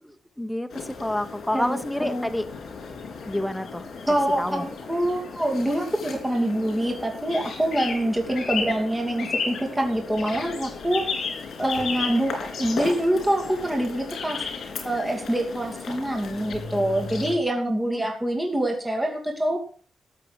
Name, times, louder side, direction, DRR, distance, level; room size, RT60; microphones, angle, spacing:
voice 1, 0.0-2.5 3.2-3.9 4.4-4.7 17.9-18.0, left 1 dB, 5° left, 8 dB, 1.1 m, -29 dB
sound 1, 0.7-17.3, left 5 dB, 80° left, 3.9 m, -34 dB
voice 2, 1.5-2.3 4.1-11.1 11.6-14.4 14.8-19.6, right 1 dB, 10° right, 1 dB, 2.8 m, -25 dB
14.0 x 7.6 x 6.3 m, 0.42 s
wide cardioid pair, 140°, 0 cm